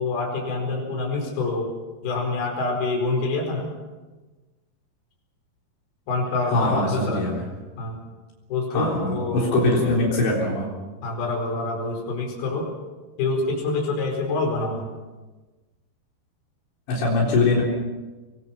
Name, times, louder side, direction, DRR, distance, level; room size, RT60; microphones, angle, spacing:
voice 1, 0.0-1.7 2.0-3.7 6.1-7.2 7.8-8.0 8.5-10.0 11.0-12.7 13.2-14.9, left 3 dB, 60° left, 1 dB, 6.6 m, -26 dB
voice 2, 6.5-7.4 8.7-10.7 16.9-17.6, left 2 dB, 80° left, -3 dB, 6.0 m, -22 dB
25.5 x 22.5 x 5.9 m, 1.2 s
omnidirectional pair, 5.1 m